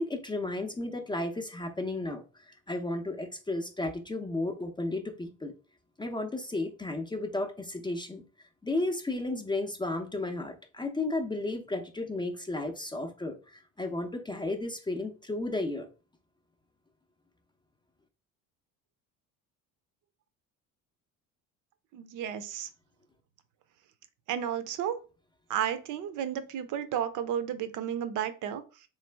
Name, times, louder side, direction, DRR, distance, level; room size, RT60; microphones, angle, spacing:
voice 1, 0.0-5.5 6.0-8.2 8.6-15.9, left 2 dB, 15° left, 0.6 m, -33 dB
voice 2, 21.9-22.7 24.3-25.0 25.5-28.6, right 9 dB, 55° right, 0.7 m, -32 dB
3.6 x 3.2 x 3.3 m
supercardioid pair, 90°, 36 cm